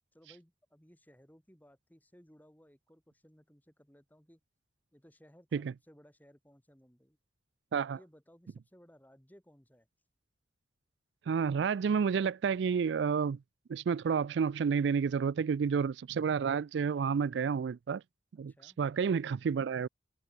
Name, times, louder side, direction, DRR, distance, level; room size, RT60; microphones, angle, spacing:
voice 1, 0.1-4.4 4.9-7.2 7.9-9.9 18.5-18.8, equal, 10° left, 4.1 m, -61 dB
voice 2, 11.3-13.4 13.7-18.0 18.4-19.9, right 6 dB, 75° right, 0.4 m, -30 dB
head